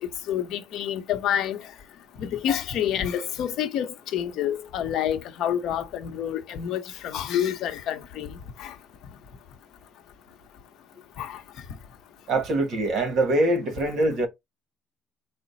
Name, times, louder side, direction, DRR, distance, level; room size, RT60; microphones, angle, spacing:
voice 1, 0.3-1.6 2.2-8.3 8.6-8.7 11.2-11.4, left 10 dB, 65° left, 0.8 m, -28 dB
voice 2, 12.3-14.3, right 2 dB, 55° right, 1.4 m, -23 dB
4.9 x 2.1 x 4.0 m
cardioid pair, 130°, 0 cm